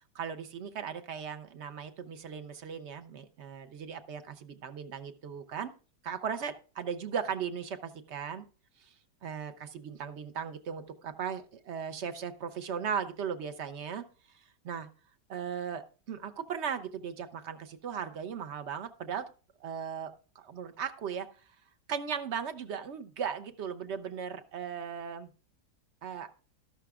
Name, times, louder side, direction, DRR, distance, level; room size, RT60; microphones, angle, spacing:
voice 1, 0.1-5.7 6.0-8.5 8.8-8.9 9.2-14.1 14.6-14.9 15.3-19.2 19.6-21.3 21.9-25.3 26.0-26.3, right 7 dB, 65° right, 9 dB, 0.7 m, -37 dB
12.5 x 11.5 x 2.4 m, 0.35 s
omnidirectional pair, 1.9 m